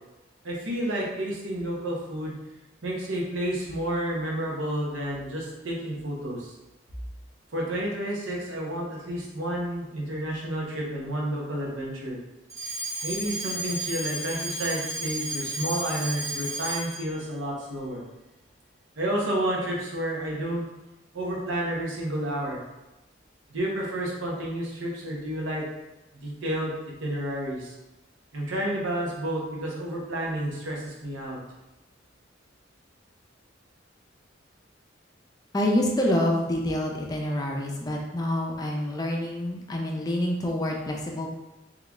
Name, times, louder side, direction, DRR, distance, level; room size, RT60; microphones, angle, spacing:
voice 1, 0.4-2.4 2.8-6.5 7.5-12.2 13.0-18.0 19.0-20.6 21.1-22.6 23.5-25.7 26.2-27.8 28.3-31.4, right 1 dB, 80° right, -3 dB, 0.9 m, -30 dB
Alarm, 12.5-17.1, right 1 dB, 15° right, 1.4 m, -33 dB
voice 2, 35.5-41.3, left 1 dB, 20° left, -1 dB, 0.4 m, -27 dB
3.7 x 3.0 x 2.3 m, 1.0 s
head